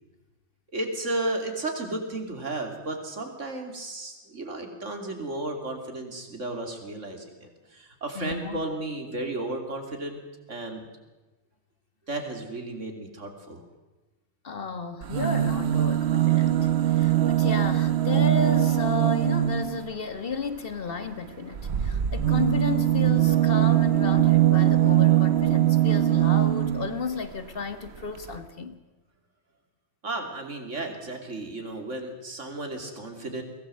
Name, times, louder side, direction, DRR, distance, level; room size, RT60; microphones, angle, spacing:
voice 1, 0.7-10.2 10.5-10.8 12.1-13.6 30.0-33.4, right 2 dB, 85° right, 4 dB, 3.3 m, -33 dB
voice 2, 8.1-8.6 14.4-28.7, left 4 dB, 50° left, 10 dB, 1.7 m, -33 dB
sound 1, 15.0-19.9 21.5-27.0 28.0-28.1 28.3-28.4, right 12 dB, 65° right, 1.2 m, -22 dB
22.5 x 17.0 x 7.7 m, 1.2 s
omnidirectional pair, 1.2 m